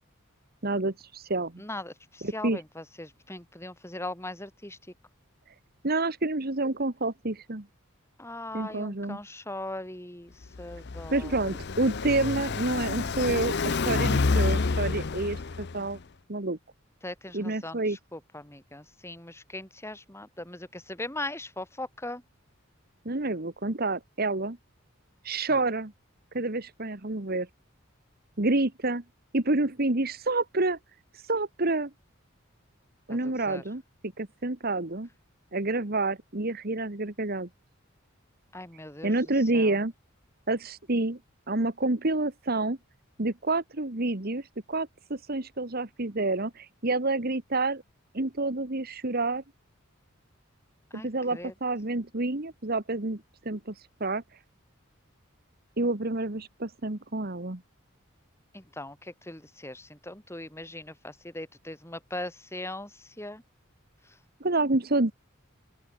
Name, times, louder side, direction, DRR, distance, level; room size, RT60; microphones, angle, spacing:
voice 1, 0.6-1.6 2.2-2.6 5.8-7.7 8.5-9.2 11.1-16.0 16.3-16.6 17.3-18.0 23.0-24.6 25.2-25.9 26.3-27.5 28.4-29.0 29.3-30.8 31.3-31.9 33.1-35.1 35.5-37.5 39.0-39.9 40.5-41.2 41.5-42.8 43.2-47.8 48.1-49.4 51.0-53.7 54.0-54.2 55.8-57.6 64.4-65.1, right 2 dB, 45° right, 1.6 m, -28 dB
voice 2, 1.6-4.8 8.2-11.5 17.0-22.2 25.5-25.6 33.1-33.6 38.5-39.2 39.5-39.8 50.9-51.5 58.5-63.4 64.0-64.2, left 1 dB, 15° left, 5.4 m, -40 dB
Car passing by, 10.4-16.0, left 4 dB, 55° left, 0.7 m, -28 dB
open air
head